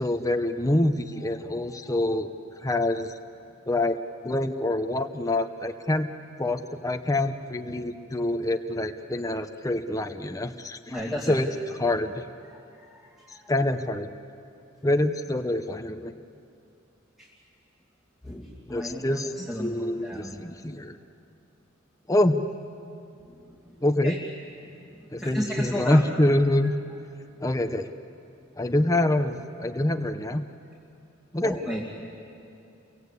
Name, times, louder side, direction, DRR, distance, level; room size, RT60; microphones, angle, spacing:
voice 1, 0.0-2.3 2.6-3.1 3.7-4.0 4.2-6.1 6.4-12.2 13.5-14.1 14.8-16.1 18.7-21.0 22.1-22.4 23.8-24.2 25.1-26.7 27.4-27.9 28.6-30.4 31.3-31.6, left 1 dB, 15° left, 7 dB, 0.8 m, -26 dB
voice 2, 10.9-11.3 12.9-13.0 18.2-19.0 19.5-20.4 24.0-24.1 25.2-26.0 31.4-31.8, left 1 dB, ahead, -3 dB, 2.4 m, -32 dB
29.0 x 23.5 x 8.4 m, 2.6 s
head